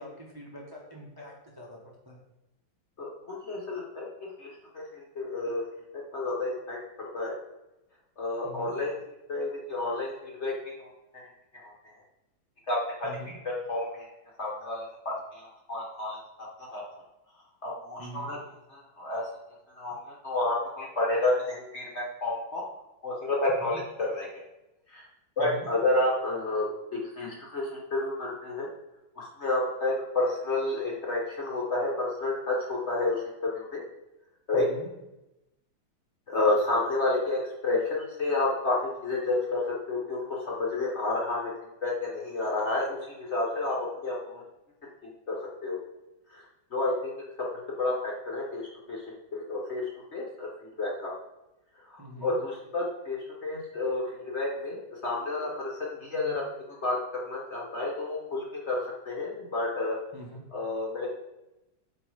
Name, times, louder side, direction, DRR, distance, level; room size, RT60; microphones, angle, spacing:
voice 1, 0.0-1.8 2.0-2.2 8.4-8.8 13.0-13.3 18.0-18.3 23.6-23.8 25.4-25.7 34.5-34.9 52.0-52.4 60.1-60.4, equal, 20° right, -3 dB, 0.6 m, -44 dB
voice 2, 3.0-4.1 4.4-4.5 4.7-5.6 6.1-6.8 7.1-7.3 8.2-8.9 9.3-10.5 10.8-11.3 11.6-11.7 12.7-13.1 13.4-14.1 14.4-16.8 17.6-18.4 18.7-19.3 19.8-22.6 23.0-23.8 24.1-24.4 24.9-25.0 25.4-26.7 26.9-28.7 29.2-33.8 34.5-34.7 36.3-41.5 41.8-44.4 45.3-45.8 46.3-46.4 46.7-47.1 47.8-49.0 49.3-49.8 50.1-50.5 50.8-51.1 52.2-56.4 56.8-57.0 57.2-60.0 60.5-61.1, left 2 dB, 45° left, -3 dB, 0.9 m, -30 dB
7.6 x 3.1 x 4.7 m, 0.93 s
omnidirectional pair, 2.2 m